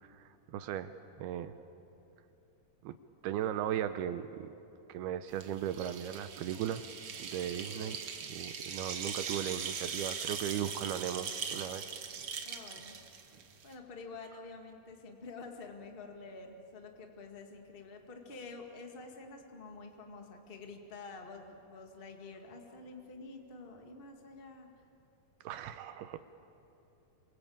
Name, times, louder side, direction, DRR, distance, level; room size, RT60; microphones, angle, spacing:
voice 1, 0.0-1.5 2.8-2.9 3.2-4.5 4.9-6.9 7.2-8.0 8.3-11.9 25.4-26.2, right 10 dB, 80° right, 11 dB, 2.5 m, -37 dB
sound 1, 5.3-13.7, right 6 dB, 60° right, 1.4 m, -41 dB
voice 2, 12.4-13.0 13.6-24.7, left 3 dB, 75° left, 3 dB, 0.5 m, -48 dB
27.5 x 24.0 x 8.7 m, 2.9 s
omnidirectional pair, 4.8 m